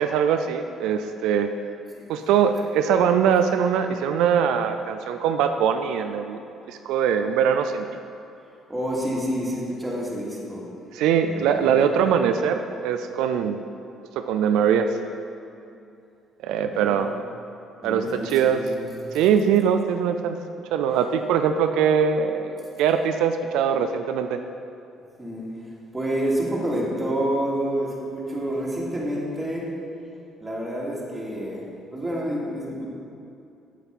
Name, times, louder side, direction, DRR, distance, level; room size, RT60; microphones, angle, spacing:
voice 1, 0.0-1.5 2.1-6.4 6.7-7.9 10.9-13.6 14.2-14.9 16.4-17.1 17.8-18.6 19.1-20.4 20.7-24.4, right 7 dB, 85° right, 7 dB, 0.4 m, -22 dB
voice 2, 8.7-10.6 11.3-11.7 16.7-17.1 17.8-18.9 25.2-29.7 30.4-32.8, right 1 dB, 10° right, -5 dB, 2.6 m, -28 dB
8.1 x 7.6 x 5.5 m, 2.6 s
cardioid pair, 90°, 0 cm